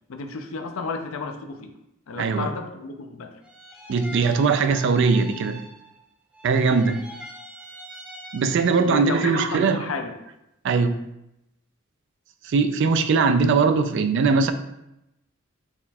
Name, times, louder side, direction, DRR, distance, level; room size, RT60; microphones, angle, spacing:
voice 1, 0.1-1.7 2.1-3.4 8.9-10.2, left 4 dB, 80° left, 6 dB, 0.5 m, -32 dB
voice 2, 2.2-2.5 3.9-5.6 6.4-7.0 8.3-9.9 10.6-11.0 12.4-14.5, right 4 dB, 60° right, 9 dB, 0.3 m, -20 dB
sound 1, 3.4-6.1 6.3-9.1, right 1 dB, 5° right, 0.5 m, -43 dB
4.2 x 2.3 x 4.1 m, 0.87 s
head